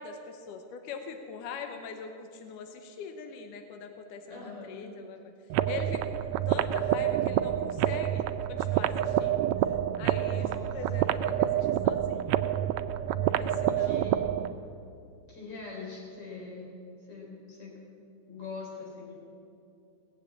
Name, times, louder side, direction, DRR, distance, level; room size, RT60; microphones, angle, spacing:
voice 1, 0.0-5.2 5.7-12.4 13.2-14.1, left 5 dB, 85° left, 6 dB, 2.4 m, -42 dB
voice 2, 4.3-4.7 10.3-10.8 13.7-14.2 15.3-16.8 17.0-17.7 18.3-19.2, left 4 dB, 60° left, -3 dB, 5.2 m, -42 dB
sound 1, 5.5-14.5, right 11 dB, 85° right, 1.6 m, -28 dB
18.5 x 7.4 x 8.4 m, 2.5 s
omnidirectional pair, 3.6 m